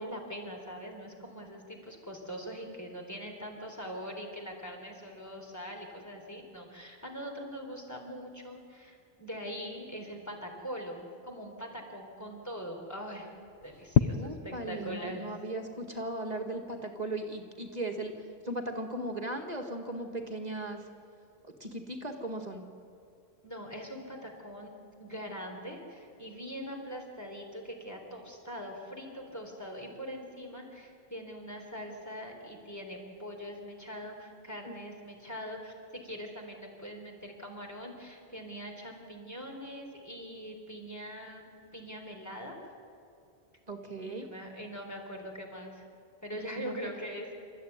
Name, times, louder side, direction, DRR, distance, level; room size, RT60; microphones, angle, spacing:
voice 1, 0.0-13.3 13.6-15.3 23.4-24.7 25.0-42.5 44.0-45.8 46.2-47.3, equal, 15° left, 1 dB, 4.0 m, -42 dB
sound 1, 13.3-30.5, left 9 dB, 85° left, 1.0 m, -40 dB
voice 2, 14.1-18.1 18.4-20.9 21.4-22.7 34.6-34.8 43.7-44.3 46.6-46.8, right 1 dB, 40° right, 4 dB, 2.0 m, -37 dB
28.5 x 14.0 x 9.5 m, 2.6 s
omnidirectional pair, 1.1 m